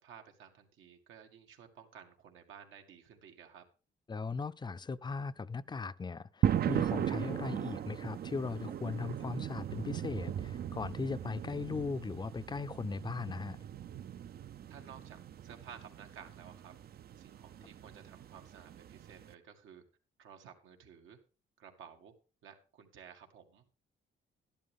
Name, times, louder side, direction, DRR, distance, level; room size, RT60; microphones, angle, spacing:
voice 1, 0.0-3.6 14.7-16.7 17.2-19.8 20.2-21.2 21.6-22.1 22.4-23.6, right 8 dB, 80° right, 2.1 m, -54 dB
voice 2, 4.1-13.6, left 4 dB, 20° left, 0.5 m, -38 dB
sound 1, 6.4-19.3, right 10 dB, 50° right, 0.5 m, -38 dB
12.5 x 11.5 x 3.6 m
cardioid pair, 90°, 20 cm